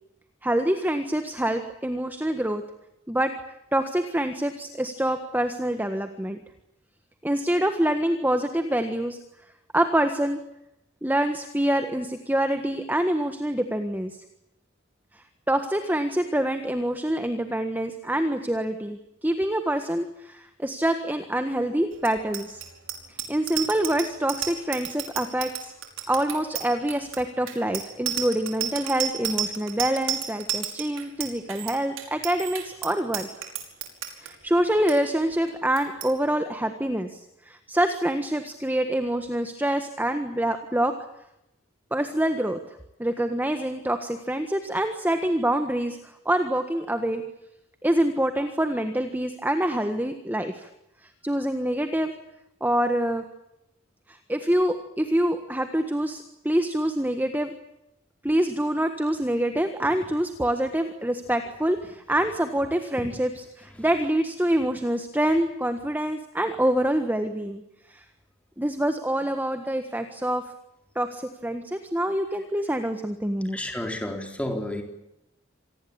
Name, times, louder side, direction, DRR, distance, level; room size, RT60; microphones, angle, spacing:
voice 1, 0.4-2.6 3.1-3.3 3.7-6.4 7.2-9.2 9.7-10.4 11.0-14.2 15.1-22.6 23.1-25.7 26.1-33.3 34.2-41.0 41.9-42.6 43.0-47.2 47.8-50.7 51.0-52.1 52.6-53.2 54.1-57.5 58.2-67.6 67.9-68.0 68.6-70.4 70.9-73.6, right 1 dB, 10° right, 7 dB, 1.5 m, -26 dB
Bicycle bell, 22.0-34.3 34.7-34.9 35.2-35.5 35.8-36.1, right 9 dB, 80° right, 5.1 m, -32 dB
voice 2, 73.5-74.8, left 1 dB, 5° left, 3 dB, 4.0 m, -31 dB
27.0 x 19.5 x 8.8 m, 0.85 s
head